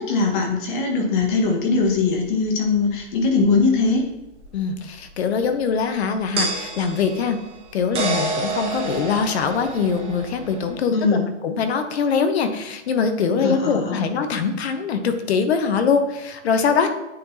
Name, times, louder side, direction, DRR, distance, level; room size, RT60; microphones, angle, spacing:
voice 1, 0.0-4.1 10.9-11.3 13.4-14.0, left 4 dB, 40° left, 2 dB, 1.4 m, -21 dB
sound 1, 1.9-2.0 4.4-4.5 6.4-10.7, right 3 dB, 15° right, 0.8 m, -28 dB
voice 2, 4.5-7.4 7.7-16.9, left 5 dB, 60° left, 8 dB, 0.9 m, -23 dB
9.0 x 3.9 x 2.7 m, 0.96 s
hypercardioid pair, 155°, 36 cm